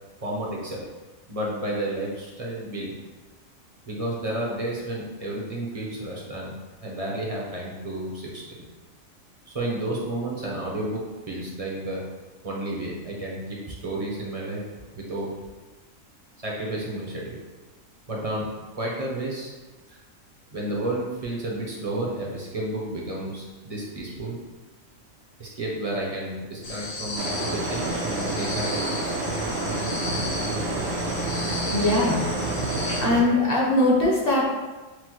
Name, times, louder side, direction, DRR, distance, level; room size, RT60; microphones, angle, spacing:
voice 1, 0.2-0.8 1.3-3.0 3.9-8.4 9.5-12.0 12.4-14.6 14.9-15.3 16.4-17.4 18.1-18.5 18.8-19.5 19.9-20.0 20.5-24.3 25.4-29.2, right 1 dB, 35° right, -4 dB, 0.6 m, -31 dB
sound 1, 26.6-33.0, left 2 dB, 80° left, 1.2 m, -34 dB
sound 2, 27.2-33.2, right 2 dB, 70° right, 1.0 m, -28 dB
voice 2, 31.7-32.3 32.6-34.5, left 1 dB, 50° left, -3 dB, 0.9 m, -22 dB
6.0 x 2.1 x 3.0 m, 1.2 s
omnidirectional pair, 1.4 m